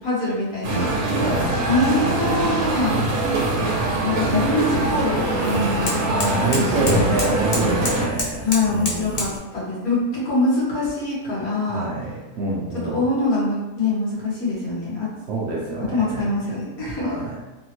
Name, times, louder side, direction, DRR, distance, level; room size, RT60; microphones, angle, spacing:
voice 1, 0.0-0.9 1.7-2.9 4.0-7.0 7.5-7.8 8.4-11.9 12.9-15.1 15.9-17.3, left 2 dB, 85° left, -7 dB, 1.6 m, -24 dB
sound 1, 0.6-8.1, right 2 dB, 85° right, 1.1 m, -23 dB
voice 2, 1.2-1.5 6.0-9.2 11.7-13.0 15.3-16.3 17.0-17.4, right 2 dB, 65° right, -3 dB, 0.7 m, -26 dB
sound 2, 3.6-9.4, left 2 dB, 40° left, 0.5 m, -31 dB
3.5 x 2.1 x 2.8 m, 1.1 s
omnidirectional pair, 1.5 m